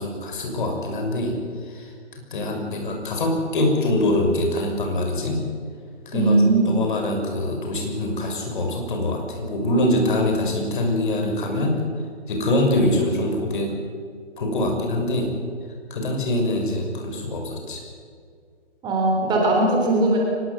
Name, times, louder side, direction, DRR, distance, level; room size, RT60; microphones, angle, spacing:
voice 1, 0.0-1.4 1.7-1.9 2.3-5.4 6.1-11.8 12.3-13.8 14.4-15.3 15.9-17.9, left 1 dB, 45° left, 2 dB, 6.3 m, -24 dB
voice 2, 6.1-6.7 18.8-20.2, right 2 dB, 10° right, 0 dB, 3.5 m, -19 dB
24.0 x 20.0 x 8.1 m, 2.1 s
figure-of-eight pair, 140°, 34 cm